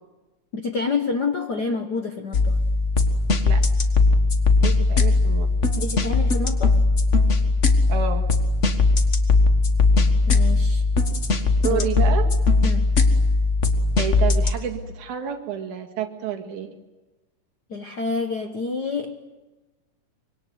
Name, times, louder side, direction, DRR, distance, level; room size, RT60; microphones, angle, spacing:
voice 1, 0.5-2.5 5.8-6.8 10.3-10.8 11.7-11.9 12.6-12.9 17.7-19.2, left 4 dB, 70° left, 6 dB, 0.9 m, -28 dB
sound 1, 2.3-14.5, left 3 dB, 45° left, 0.9 m, -19 dB
voice 2, 4.6-5.5 7.9-8.2 11.6-12.3 14.0-16.7, right 8 dB, 65° right, 3 dB, 3.3 m, -29 dB
25.0 x 23.0 x 9.4 m, 1.2 s
omnidirectional pair, 3.8 m